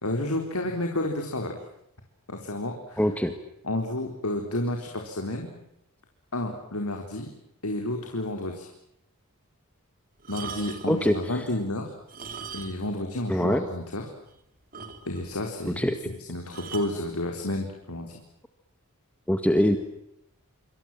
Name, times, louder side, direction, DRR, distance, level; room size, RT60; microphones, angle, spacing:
voice 1, 0.0-1.6 2.3-3.0 3.6-5.5 6.3-7.3 7.6-8.7 10.3-11.9 12.5-14.0 15.0-15.8 16.3-18.2, left 1 dB, 75° left, 3 dB, 4.1 m, -31 dB
voice 2, 3.0-3.3 10.9-11.4 13.3-13.7 15.7-16.0 19.3-19.8, equal, 5° left, 8 dB, 1.8 m, -23 dB
sound 1, 10.2-11.0 12.0-13.0 13.3-13.4 13.9-14.0 14.3-14.4 14.7-15.4 16.5-17.0 17.8-18.1, right 6 dB, 40° right, 3.3 m, -40 dB
27.0 x 26.5 x 7.5 m, 0.80 s
head